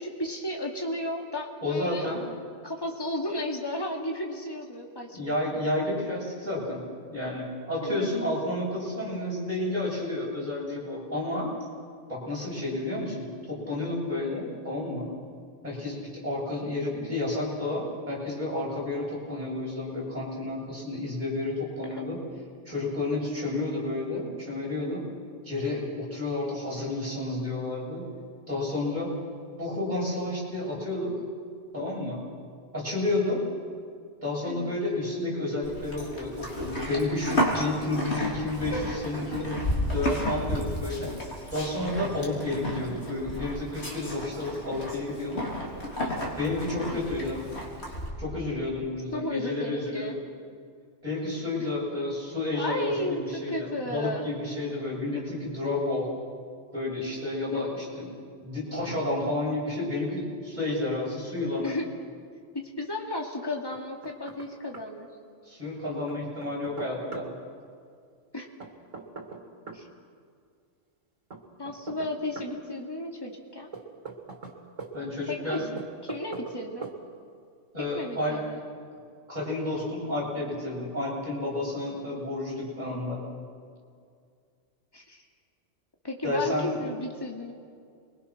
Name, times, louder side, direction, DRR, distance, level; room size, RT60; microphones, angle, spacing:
voice 1, 0.0-2.1 2.6-5.4 7.8-8.1 22.0-22.1 34.4-34.8 37.5-37.7 38.7-38.8 46.9-47.0 49.1-50.2 52.5-54.3 57.5-57.6 61.6-61.9 62.5-65.1 68.3-68.5 69.7-69.9 71.6-73.7 75.3-76.9 77.9-78.6 84.9-85.2 86.0-87.5, left 1 dB, 20° left, 0 dB, 2.5 m, -34 dB
voice 2, 1.6-2.2 5.1-6.8 7.1-11.5 12.1-15.1 15.6-22.2 22.6-25.0 25.4-28.1 28.5-29.1 29.6-31.1 31.7-32.2 32.7-33.4 34.2-41.1 41.5-45.4 46.4-47.4 48.2-50.2 51.0-56.1 56.7-58.1 58.4-61.7 65.4-67.3 74.9-75.6 77.7-78.4 79.3-83.2 86.2-86.8, left 2 dB, 35° right, -6 dB, 8.3 m, -31 dB
Livestock farm animals working animals, 35.6-48.1, equal, 60° left, 4.0 m, -32 dB
Knock, 63.7-64.5 64.7-64.8 66.1-67.3 68.6-69.8 71.3-72.5 73.7-74.9 75.8-76.6 76.8-77.0, right 4 dB, 80° right, 2.7 m, -41 dB
29.0 x 23.0 x 6.2 m, 2.2 s
omnidirectional pair, 1.3 m